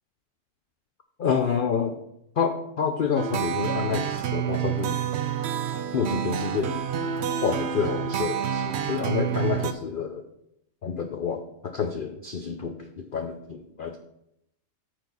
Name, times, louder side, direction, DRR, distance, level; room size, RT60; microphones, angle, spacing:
voice 1, 1.2-2.0 2.4-5.0 5.9-6.7 7.4-10.2 10.8-14.0, left 6 dB, 65° left, 6 dB, 0.5 m, -28 dB
sound 1, 3.2-9.7, right 8 dB, 60° right, 0.7 m, -28 dB
8.8 x 4.4 x 5.4 m, 0.79 s
omnidirectional pair, 1.6 m